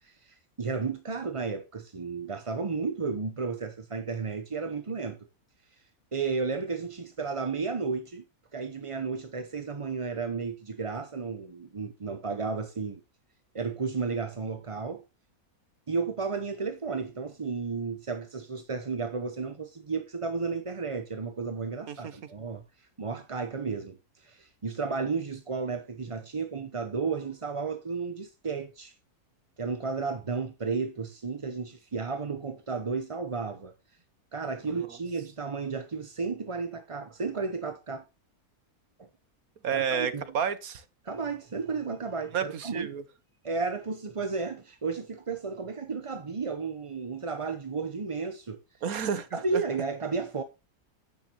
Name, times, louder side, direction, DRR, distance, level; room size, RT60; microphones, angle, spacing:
voice 1, 0.0-5.2 5.7-5.8 6.1-8.2 8.5-13.0 13.5-15.0 15.9-28.9 29.6-33.7 34.3-38.0 39.0-39.1 39.7-40.3 41.0-42.9 43.4-48.6 49.3-50.4, right 4 dB, 30° right, 0.7 m, -33 dB
voice 2, 39.6-40.8 42.3-43.0 48.8-49.6, right 7 dB, 70° right, 1.7 m, -31 dB
10.5 x 8.9 x 2.9 m
omnidirectional pair, 1.6 m